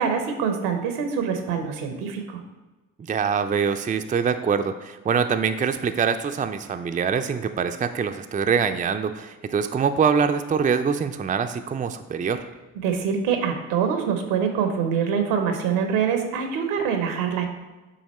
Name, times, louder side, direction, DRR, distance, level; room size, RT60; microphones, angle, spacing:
voice 1, 0.0-2.4 12.8-17.5, right 7 dB, 80° right, 5 dB, 0.9 m, -25 dB
voice 2, 3.1-12.5, right 6 dB, 20° right, 7 dB, 0.4 m, -24 dB
8.5 x 2.9 x 4.2 m, 1.2 s
hypercardioid pair, 50°, 39 cm